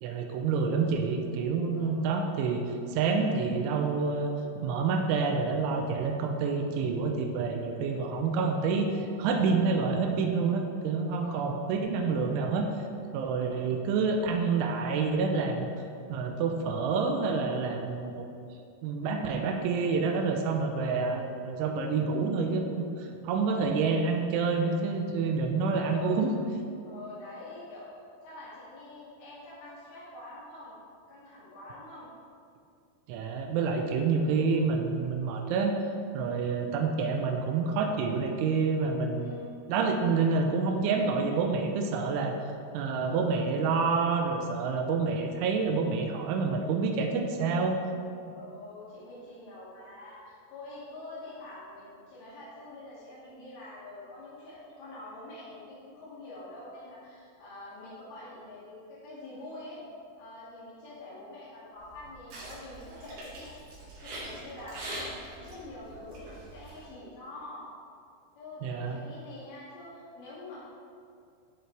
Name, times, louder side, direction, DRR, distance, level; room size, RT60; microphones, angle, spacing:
voice 1, 0.0-12.7 13.1-15.7 16.1-18.3 18.8-26.3 33.1-35.8 36.1-39.3 39.7-42.4 42.7-47.9 68.6-69.0, right 4 dB, 85° right, 3 dB, 3.2 m, -28 dB
voice 2, 25.8-26.2 26.8-27.9 28.2-30.8 31.1-32.1 36.3-36.5 39.2-39.4 43.1-43.3 48.3-59.8 60.2-63.5 64.0-67.7 68.4-70.6, left 2 dB, 85° left, -10 dB, 5.1 m, -46 dB
sound 1, 61.8-66.9, right 1 dB, 65° right, 4.6 m, -43 dB
13.0 x 7.6 x 3.4 m, 2.4 s
omnidirectional pair, 5.4 m